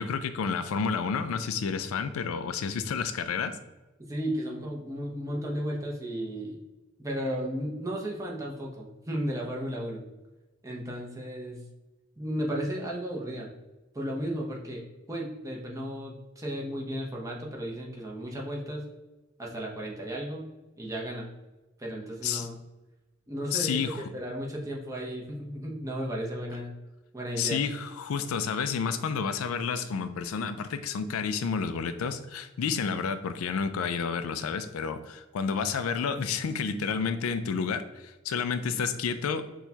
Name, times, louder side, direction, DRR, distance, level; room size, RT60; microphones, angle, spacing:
voice 1, 0.0-3.6 22.2-22.5 23.5-24.0 27.4-39.4, left 6 dB, 85° left, 11 dB, 0.4 m, -30 dB
voice 2, 4.1-6.6 7.0-10.1 10.6-11.6 12.2-13.5 13.9-18.8 19.4-20.5 20.8-21.3 21.8-22.6 23.3-23.8 24.1-26.7 27.1-27.6, equal, 15° right, -2 dB, 0.7 m, -34 dB
6.1 x 2.3 x 2.8 m, 1.1 s
head